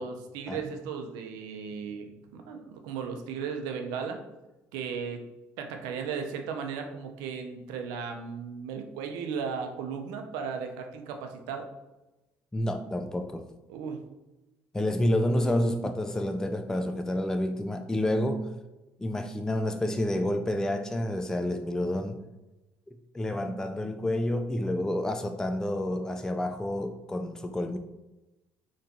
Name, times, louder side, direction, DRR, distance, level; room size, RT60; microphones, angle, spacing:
voice 1, 0.0-4.2 4.7-5.2 5.6-11.7 13.7-14.0, right 6 dB, 85° right, 5 dB, 0.5 m, -36 dB
voice 2, 12.5-13.5 14.7-18.5 19.0-22.2 23.1-27.8, left 1 dB, 10° left, 6 dB, 0.3 m, -29 dB
4.2 x 3.0 x 2.6 m, 1.0 s
supercardioid pair, 80°, 7 cm